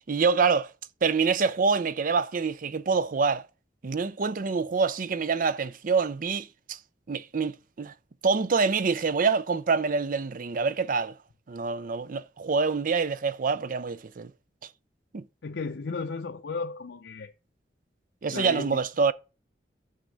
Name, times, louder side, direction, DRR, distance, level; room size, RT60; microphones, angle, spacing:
voice 1, 0.1-0.7 1.0-3.4 3.8-6.8 7.1-7.9 8.2-11.2 11.5-14.3 15.1-15.2 18.2-19.1, right 5 dB, 50° right, 0.5 m, -26 dB
voice 2, 15.4-17.3 18.3-18.8, left 4 dB, 85° left, 0.6 m, -34 dB
7.3 x 5.7 x 6.4 m
head